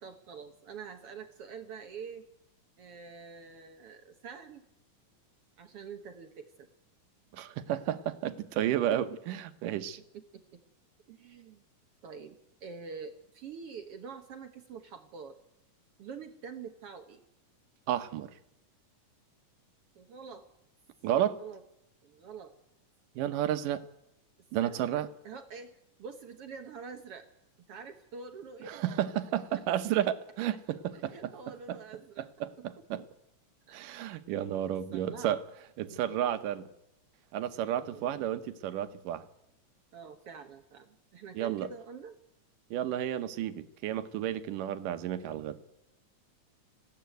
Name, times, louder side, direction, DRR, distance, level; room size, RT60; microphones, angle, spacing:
voice 1, 0.0-2.3 2.8-4.7 5.6-6.7 10.1-10.6 11.1-11.6 12.0-15.4 16.0-17.2 20.0-20.5 21.3-21.6 22.0-22.5 24.6-25.7 26.0-27.3 27.7-28.8 29.5-29.6 30.9-32.3 32.6-33.1 33.7-33.8 34.9-35.3 35.9-36.2 36.4-36.5 37.8-38.2 39.9-42.2, right 6 dB, 60° right, 6 dB, 1.7 m, -46 dB
voice 2, 7.3-10.0 17.9-18.3 21.0-21.4 23.2-23.8 24.5-25.1 28.7-31.1 31.7-31.8 32.4-33.0 33.7-35.4 35.8-36.7 37.3-39.2 41.3-41.7 42.7-45.6, right 11 dB, 90° right, 10 dB, 2.6 m, -32 dB
19.5 x 16.0 x 9.2 m, 0.84 s
omnidirectional pair, 3.7 m